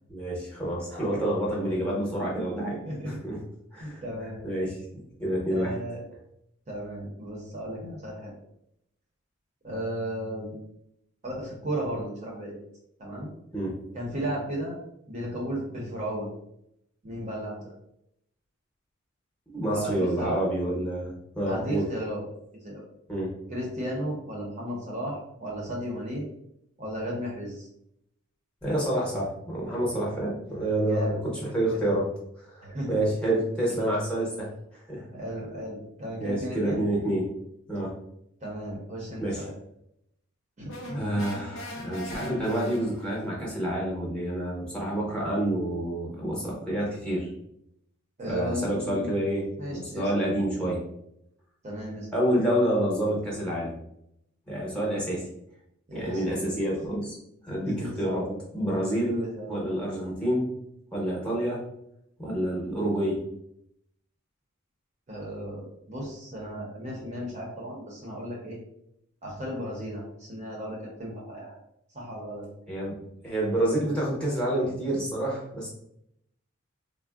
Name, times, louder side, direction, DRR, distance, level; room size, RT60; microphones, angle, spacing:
voice 1, 0.1-2.8 3.1-3.4 3.7-4.0 4.4-4.8 5.2-5.7 13.5-13.7 19.5-21.8 23.1-23.3 28.6-32.1 32.4-35.0 36.2-37.2 37.7-37.9 39.2-39.4 40.9-47.3 48.3-50.8 52.1-53.7 54.5-55.3 55.9-57.1 57.4-58.3 58.5-59.1 59.5-60.5 60.9-61.6 62.2-63.2 72.7-72.9 73.2-75.7, right 1 dB, 5° left, -4 dB, 0.7 m, -28 dB
voice 2, 2.8-3.2 3.8-4.5 5.5-6.0 6.7-8.3 9.6-10.5 11.2-12.6 13.0-13.3 13.9-14.8 15.1-16.3 17.0-17.7 19.7-20.4 21.5-22.2 22.6-22.8 23.5-26.2 26.8-27.7 30.8-31.2 31.7-31.8 32.6-33.0 33.7-33.9 35.1-37.1 38.4-39.5 40.6-41.2 48.2-49.2 49.6-50.1 51.6-52.1 55.9-56.6 57.5-58.4 59.1-59.6 65.1-68.6 69.2-71.6 71.9-72.5, equal, 35° right, -3 dB, 0.6 m, -35 dB
sound 1, 40.7-43.3, left 1 dB, 70° left, 0.6 m, -40 dB
3.5 x 2.0 x 2.3 m, 0.77 s
head